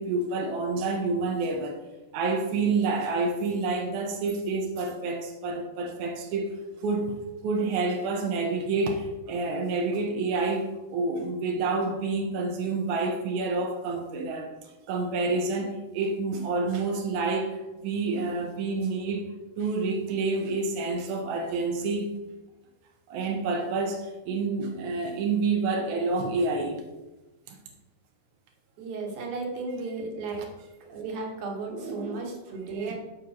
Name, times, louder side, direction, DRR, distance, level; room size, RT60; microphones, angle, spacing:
voice 1, 0.0-1.8 2.1-7.2 7.4-19.3 19.6-22.1 23.1-26.8 27.5-27.6 31.7-32.3 32.8-32.9, right 3 dB, 80° right, 1 dB, 1.8 m, -28 dB
voice 2, 28.8-30.4 30.9-32.9, right 3 dB, 60° right, 0 dB, 2.4 m, -34 dB
13.0 x 5.2 x 2.9 m, 1.1 s
omnidirectional pair, 4.5 m